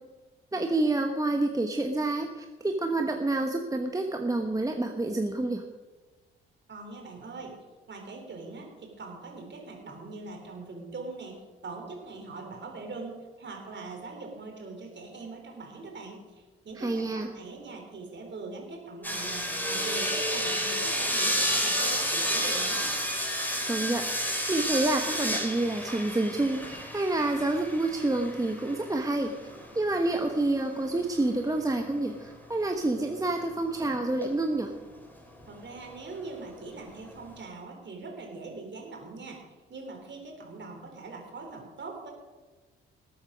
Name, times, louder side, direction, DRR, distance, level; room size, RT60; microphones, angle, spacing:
voice 1, 0.5-5.6 16.8-17.3 23.7-24.1 24.5-29.3 29.7-34.7, right 2 dB, 10° right, 4 dB, 1.2 m, -28 dB
voice 2, 6.7-7.5 7.9-23.0 35.5-42.1, right 3 dB, 40° right, 1 dB, 4.0 m, -42 dB
sound 1, 19.0-30.4 33.7-34.3 35.4-35.5, equal, 5° left, 3.7 m, -30 dB
19.0 x 8.6 x 5.1 m, 1.3 s
figure-of-eight pair, 45°, 30 cm